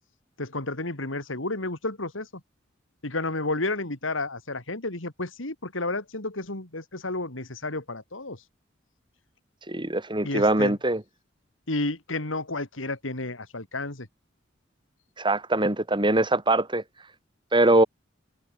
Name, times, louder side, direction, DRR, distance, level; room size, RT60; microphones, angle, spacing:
voice 1, 0.4-2.3 3.0-8.4 10.2-10.8 11.7-14.1, left 2 dB, 85° left, 3.5 m, -31 dB
voice 2, 9.7-11.0 15.2-16.8 17.5-17.9, right 2 dB, 25° right, 3.2 m, -22 dB
head